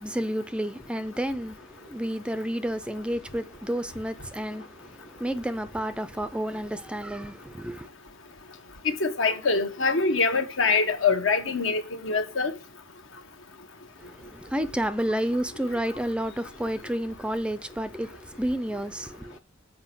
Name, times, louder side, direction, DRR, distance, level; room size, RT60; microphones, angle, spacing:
voice 1, 0.0-7.9 14.0-19.4, equal, 5° right, 0.4 m, -31 dB
voice 2, 8.8-12.5, left 4 dB, 75° left, 1.3 m, -24 dB
7.6 x 5.3 x 6.0 m
head